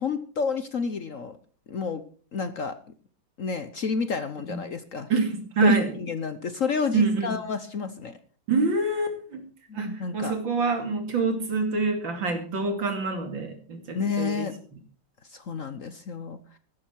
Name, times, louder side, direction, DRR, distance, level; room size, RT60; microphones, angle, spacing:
voice 1, 0.0-1.4 1.7-2.0 2.3-2.8 3.4-5.1 5.6-8.2 9.7-10.4 13.9-14.5 15.3-16.6, left 5 dB, 50° left, 11 dB, 1.1 m, -30 dB
voice 2, 5.1-5.9 6.9-7.4 8.5-9.4 9.7-14.5, right 4 dB, 75° right, 5 dB, 3.4 m, -26 dB
15.5 x 13.0 x 4.6 m, 0.40 s
omnidirectional pair, 2.1 m